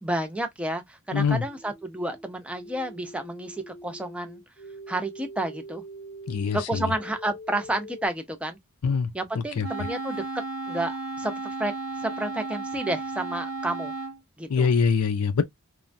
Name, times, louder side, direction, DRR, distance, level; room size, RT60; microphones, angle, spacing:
voice 1, 0.0-4.4 4.9-5.8 6.5-8.6 9.1-10.2 10.7-11.7 12.0-13.9 14.4-14.7, right 1 dB, 5° right, 0.5 m, -30 dB
voice 2, 1.1-1.4 6.3-6.8 8.8-9.1 9.6-9.7 14.5-15.4, left 5 dB, 85° left, 0.5 m, -23 dB
sound 1, 1.4-8.1, right 1 dB, 30° left, 0.8 m, -44 dB
Wind instrument woodwind instrument, 9.6-14.2, right 3 dB, 80° right, 0.6 m, -34 dB
3.0 x 2.2 x 2.5 m
head